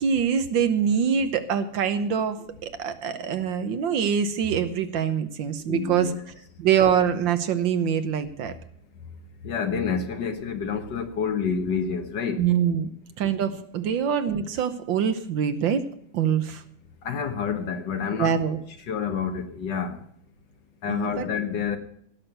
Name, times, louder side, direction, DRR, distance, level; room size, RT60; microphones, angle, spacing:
voice 1, 0.0-6.1 6.6-8.5 12.4-12.9 13.2-15.9 16.1-16.6 18.1-18.6 20.9-21.3, right 8 dB, 65° right, 1.6 m, -24 dB
voice 2, 5.7-6.1 9.4-12.4 17.0-18.3 18.9-20.0 20.8-21.8, left 6 dB, 60° left, 1.7 m, -28 dB
17.0 x 6.4 x 7.7 m
omnidirectional pair, 2.3 m